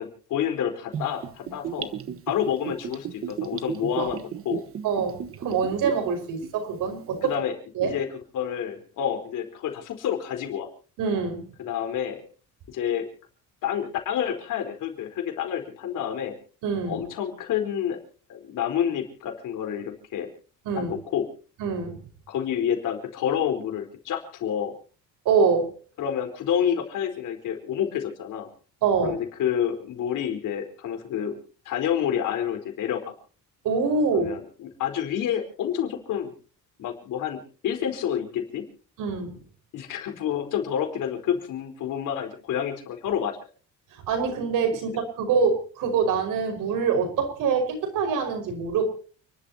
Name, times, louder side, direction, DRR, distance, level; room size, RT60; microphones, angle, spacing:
voice 1, 0.0-1.9 2.3-4.6 7.2-7.5 7.8-8.1 8.3-10.7 11.6-12.2 12.7-13.1 13.6-16.4 16.9-18.0 18.3-20.3 20.8-21.3 22.3-24.7 26.0-28.5 29.0-31.4 31.6-33.1 34.1-36.3 36.8-38.7 39.7-43.4, left 9 dB, 75° left, 4 dB, 4.4 m, -28 dB
Gurgling / Bathtub (filling or washing), 0.9-6.1 6.4-6.5, right 9 dB, 45° right, 1.3 m, -33 dB
voice 2, 4.8-7.3 7.8-7.9 11.0-11.4 16.6-17.0 20.7-20.9 21.6-22.0 25.3-25.7 28.8-29.2 33.6-34.3 39.0-39.4 44.1-48.9, right 5 dB, 85° right, 6 dB, 5.3 m, -25 dB
30.0 x 12.5 x 2.9 m, 0.40 s
cardioid pair, 150°, 32 cm